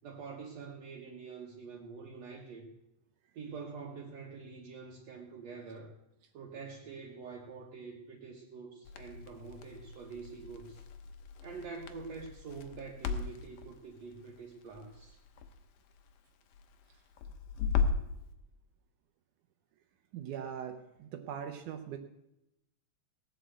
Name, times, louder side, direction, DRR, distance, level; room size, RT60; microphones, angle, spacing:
voice 1, 0.0-2.7 3.4-5.9 6.3-10.8 11.4-15.2, right 5 dB, 60° right, -1 dB, 2.4 m, -46 dB
Crackle, 8.8-18.2, left 5 dB, 85° left, 2.6 m, -38 dB
voice 2, 20.1-22.0, right 8 dB, 80° right, 5 dB, 2.4 m, -41 dB
19.0 x 6.3 x 8.1 m, 0.86 s
omnidirectional pair, 3.6 m